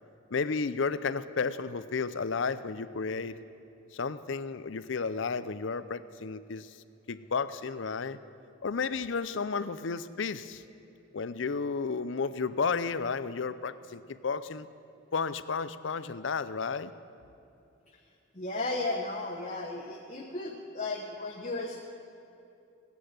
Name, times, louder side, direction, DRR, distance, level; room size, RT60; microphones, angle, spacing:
voice 1, 0.3-3.4 3.9-6.8 7.1-8.2 8.6-10.6 11.1-14.7 15.1-16.9, left 5 dB, 65° left, 14 dB, 0.6 m, -32 dB
voice 2, 18.3-21.9, left 2 dB, 35° left, -1 dB, 1.1 m, -35 dB
17.0 x 10.0 x 8.0 m, 2.7 s
head